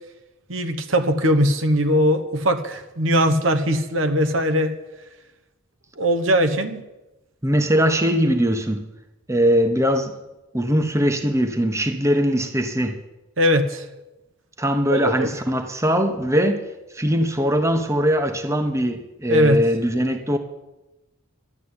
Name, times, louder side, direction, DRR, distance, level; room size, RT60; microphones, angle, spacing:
voice 1, 0.5-4.7 6.0-6.9 13.4-13.9 14.9-15.3 19.3-19.6, equal, 80° right, 8 dB, 1.3 m, -20 dB
voice 2, 7.4-8.8 9.3-10.1 10.5-13.0 14.6-16.6 16.9-20.4, equal, 15° right, 7 dB, 1.0 m, -21 dB
12.0 x 8.3 x 9.8 m, 1.0 s
head